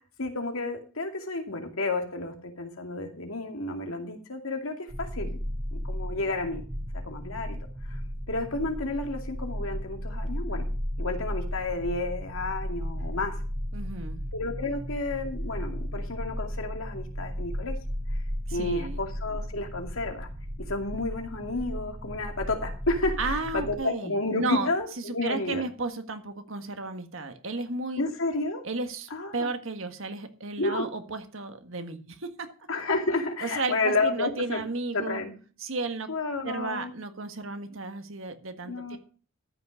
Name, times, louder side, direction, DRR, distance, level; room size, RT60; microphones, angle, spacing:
voice 1, 0.0-5.4 5.7-6.6 6.9-7.6 7.9-8.0 8.3-10.6 11.0-13.4 14.3-17.8 18.5-20.3 20.7-25.6 28.0-28.6 29.1-29.5 30.6-30.9 32.7-34.7 34.9-35.3 36.1-36.9 38.7-39.0, left 2 dB, 75° left, 4 dB, 2.4 m, -31 dB
sound 1, 4.9-23.8, equal, 85° right, 7.1 m, -35 dB
voice 2, 13.7-14.2 18.5-19.0 23.2-24.7 25.1-28.0 28.6-32.5 33.4-35.2 35.6-36.1 36.4-39.0, right 3 dB, 65° right, 7 dB, 1.7 m, -33 dB
13.5 x 6.2 x 6.4 m, 0.38 s
head